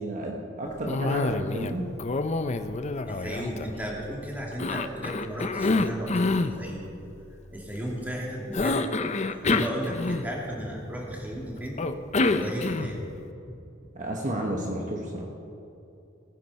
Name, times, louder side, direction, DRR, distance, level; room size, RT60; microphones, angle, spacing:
voice 1, 0.0-1.9 12.3-12.5 13.9-15.2, right 1 dB, 40° right, 0 dB, 1.2 m, -32 dB
Cough, 0.9-1.7 2.0-4.1 4.6-6.6 8.5-10.5 11.8-13.1, left 3 dB, 35° left, 0.6 m, -27 dB
voice 2, 3.1-6.9 7.5-8.9 9.3-11.8 12.4-13.0 13.4-13.6, equal, 10° right, -3 dB, 2.5 m, -35 dB
19.5 x 10.0 x 4.2 m, 2.7 s
head